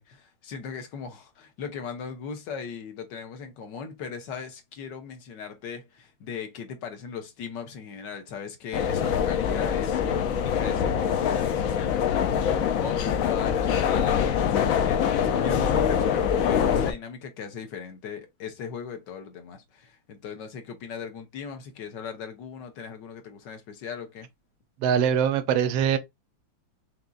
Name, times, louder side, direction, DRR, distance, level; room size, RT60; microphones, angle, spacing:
voice 1, 0.0-12.4 12.8-14.6 14.8-24.3, left 6 dB, 65° left, 1.5 m, -38 dB
sound 1, 8.7-16.9, left 8 dB, 85° left, 0.7 m, -24 dB
voice 2, 24.8-26.0, right 8 dB, 90° right, 1.5 m, -22 dB
5.3 x 2.9 x 2.5 m
omnidirectional pair, 2.1 m